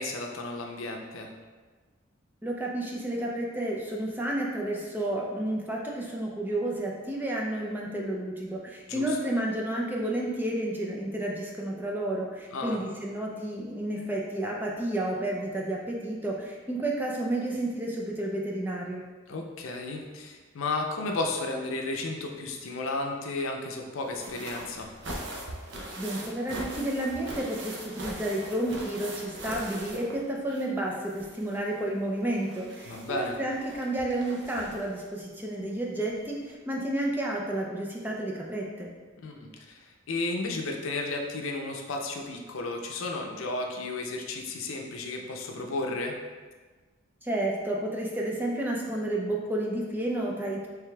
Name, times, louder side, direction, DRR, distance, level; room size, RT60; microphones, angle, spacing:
voice 1, 0.0-1.3 8.9-9.2 12.5-12.8 19.3-24.9 32.9-33.4 39.2-46.2, left 2 dB, 90° left, 2 dB, 0.5 m, -33 dB
voice 2, 2.4-19.0 26.0-38.9 47.2-50.7, right 1 dB, 10° right, -2 dB, 0.4 m, -31 dB
sound 1, 24.0-30.8 31.0-35.0 36.1-36.2 36.5-36.6, right 1 dB, 60° right, 0.6 m, -41 dB
4.8 x 3.4 x 2.3 m, 1.4 s
head